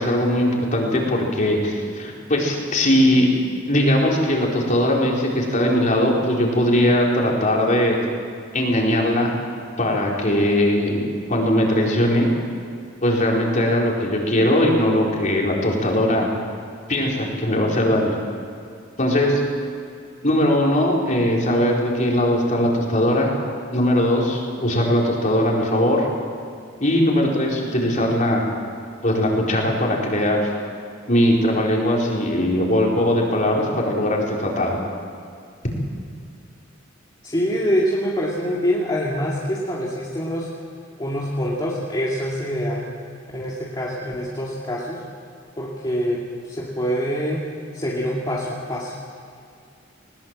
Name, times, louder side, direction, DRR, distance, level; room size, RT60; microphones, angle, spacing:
voice 1, 0.0-3.3 3.7-8.0 8.5-9.3 9.8-11.0 11.3-12.3 13.0-16.3 16.9-18.1 19.0-19.4 20.2-23.3 23.7-26.1 26.8-28.5 29.0-30.5 31.1-34.8, left 1 dB, 40° left, -2 dB, 4.4 m, -20 dB
voice 2, 37.2-40.5 41.0-42.9 43.3-45.0 45.6-47.5 47.7-49.0, equal, 20° left, -5 dB, 2.4 m, -25 dB
20.5 x 20.0 x 7.6 m, 2.4 s
head